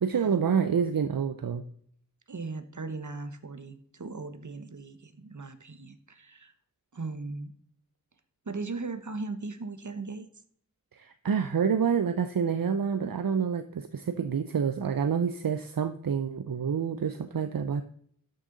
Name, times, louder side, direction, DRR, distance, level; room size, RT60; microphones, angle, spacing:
voice 1, 0.0-1.6 10.9-17.8, right 7 dB, 75° right, 10 dB, 0.6 m, -28 dB
voice 2, 2.3-6.5 6.9-7.5 8.4-10.3, right 3 dB, 55° right, 11 dB, 1.0 m, -38 dB
12.5 x 6.6 x 3.9 m, 0.65 s
wide cardioid pair, 45°, 35 cm